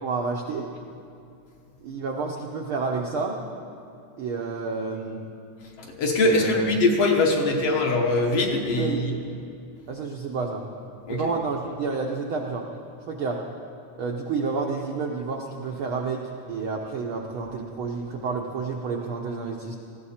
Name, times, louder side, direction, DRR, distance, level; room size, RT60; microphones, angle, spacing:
voice 1, 0.0-0.7 1.8-3.4 4.2-5.3 6.2-6.7 7.4-7.8 8.8-9.2 9.9-10.6 11.1-12.7 13.1-13.4 14.0-19.8, right 4 dB, 70° right, 0 dB, 1.2 m, -30 dB
voice 2, 5.8-9.1 11.1-11.2, left 2 dB, 60° left, 1 dB, 1.9 m, -22 dB
19.0 x 15.0 x 4.3 m, 2.6 s
omnidirectional pair, 3.5 m